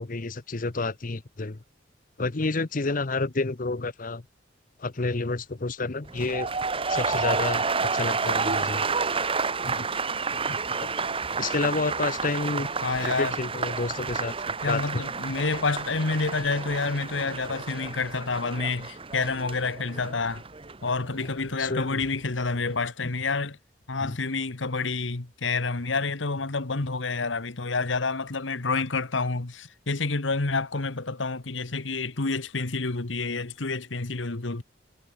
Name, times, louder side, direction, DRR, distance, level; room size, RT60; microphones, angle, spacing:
voice 1, 0.0-1.6 2.2-4.2 4.8-6.5 6.9-8.9 9.6-9.9 10.3-12.7 13.0-14.8 21.6-22.0 24.0-24.2, left 3 dB, 45° left, 0.9 m, -30 dB
sound 1, 6.0-22.1 22.4-22.8, right 4 dB, 30° right, 1.4 m, -30 dB
sound 2, 8.4-11.8, equal, 50° right, 7.2 m, -44 dB
voice 2, 12.8-13.3 14.6-20.4 20.8-23.6 23.9-34.6, left 3 dB, 90° left, 1.5 m, -28 dB
head